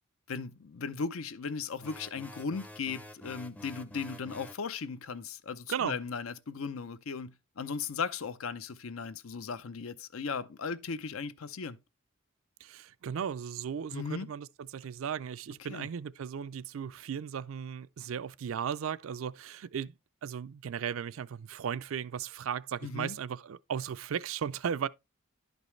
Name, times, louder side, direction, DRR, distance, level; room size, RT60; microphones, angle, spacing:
voice 1, 0.3-11.8 13.9-14.3 15.7-15.9 22.8-23.2, left 5 dB, 80° left, 0.6 m, -37 dB
sound 1, 1.8-4.7, left 1 dB, 5° left, 0.5 m, -48 dB
voice 2, 12.6-19.9 20.2-24.9, right 8 dB, 70° right, 0.4 m, -36 dB
11.0 x 5.3 x 3.1 m
head